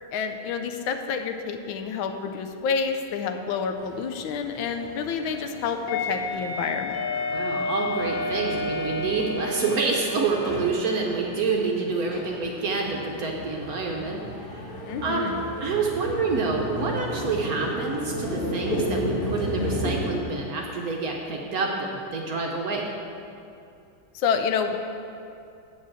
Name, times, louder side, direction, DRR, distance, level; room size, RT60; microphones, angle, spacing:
voice 1, 0.1-7.0 14.8-15.4 24.1-24.8, left 6 dB, 80° left, 6 dB, 1.4 m, -28 dB
sound 1, 3.8-20.2, left 1 dB, 50° left, 0.6 m, -32 dB
voice 2, 7.3-14.2 14.5-14.7 15.0-15.3 15.6-22.9, right 4 dB, 60° right, 0 dB, 1.0 m, -27 dB
8.1 x 4.9 x 7.4 m, 2.6 s
omnidirectional pair, 2.2 m